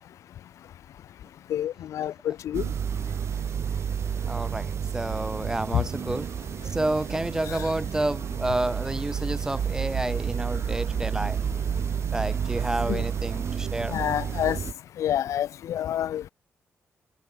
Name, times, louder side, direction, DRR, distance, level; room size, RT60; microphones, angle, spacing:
voice 1, 1.5-2.7 5.7-5.8 7.5-7.7 12.9-13.0 13.9-14.6 15.0-16.3, left 11 dB, 90° left, 1.2 m, -28 dB
sound 1, 2.5-14.7, right 8 dB, 65° right, 1.3 m, -30 dB
voice 2, 4.3-6.3 6.7-11.4 12.1-14.0, right 1 dB, 10° right, 2.0 m, -30 dB
cardioid pair, 90°, 5 cm